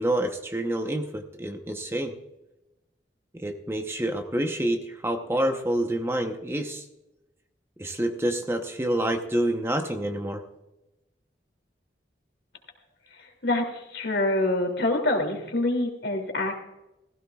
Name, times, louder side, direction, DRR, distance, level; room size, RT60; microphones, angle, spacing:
voice 1, 0.0-2.1 3.3-6.8 7.8-10.4, right 1 dB, 15° right, 5 dB, 0.8 m, -27 dB
voice 2, 13.1-16.6, left 2 dB, 75° left, 3 dB, 2.7 m, -26 dB
16.5 x 15.5 x 2.4 m, 0.96 s
head